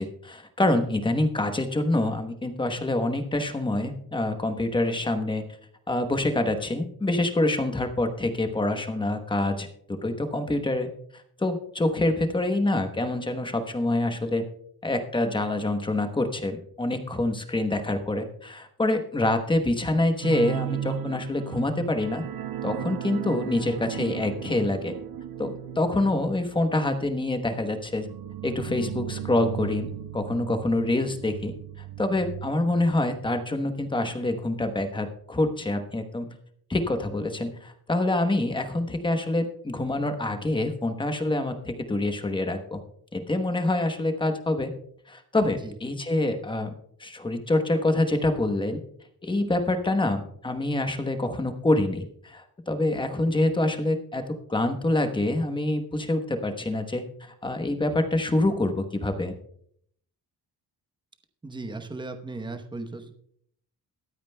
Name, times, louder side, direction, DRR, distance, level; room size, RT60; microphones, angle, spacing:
voice 1, 0.0-5.4 5.9-10.9 11.4-14.4 14.8-22.2 22.6-24.9 25.4-28.1 28.4-31.5 32.0-36.3 36.7-42.8 43.1-44.7 45.1-46.7 47.0-48.8 49.2-59.3, left 2 dB, 15° left, 7 dB, 1.0 m, -26 dB
sound 1, 20.2-33.5 33.8-34.0 34.3-34.4, right 12 dB, 75° right, 0.7 m, -36 dB
voice 2, 61.4-63.1, right 3 dB, 10° right, 6 dB, 0.9 m, -36 dB
22.5 x 8.9 x 2.2 m, 0.67 s
wide cardioid pair, 150°, 36 cm